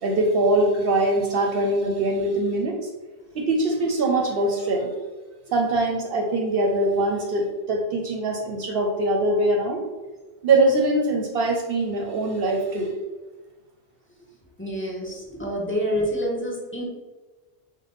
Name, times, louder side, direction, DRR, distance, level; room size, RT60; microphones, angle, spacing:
voice 1, 0.0-2.7 3.3-4.9 5.5-9.8 10.4-12.9, right 2 dB, 70° right, 1 dB, 0.8 m, -22 dB
voice 2, 14.6-16.8, equal, 15° left, -3 dB, 0.7 m, -27 dB
5.0 x 2.1 x 3.9 m, 1.2 s
omnidirectional pair, 1.1 m